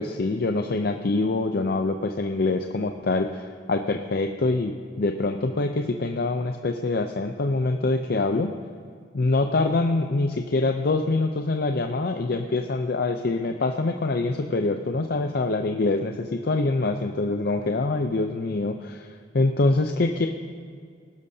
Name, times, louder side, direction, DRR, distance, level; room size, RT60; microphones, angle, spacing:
voice 1, 0.0-8.5 9.1-19.1 19.3-20.3, left 3 dB, 55° left, 5 dB, 0.6 m, -25 dB
19.5 x 12.0 x 2.8 m, 2.1 s
head